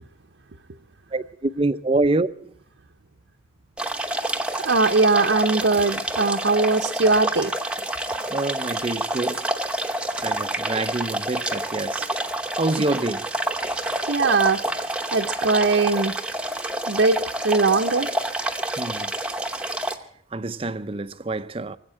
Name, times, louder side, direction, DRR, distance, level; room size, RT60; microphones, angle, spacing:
voice 1, 1.1-2.5 8.3-9.5 10.2-12.1 12.6-13.3 18.8-19.1 20.3-21.8, right 2 dB, 30° right, 0.5 m, -26 dB
sound 1, 3.8-20.0, right 1 dB, 5° right, 0.9 m, -28 dB
voice 2, 4.5-7.5 14.1-14.6 15.1-16.1 16.9-18.1, right 3 dB, 75° right, 0.8 m, -20 dB
23.0 x 8.2 x 7.5 m
head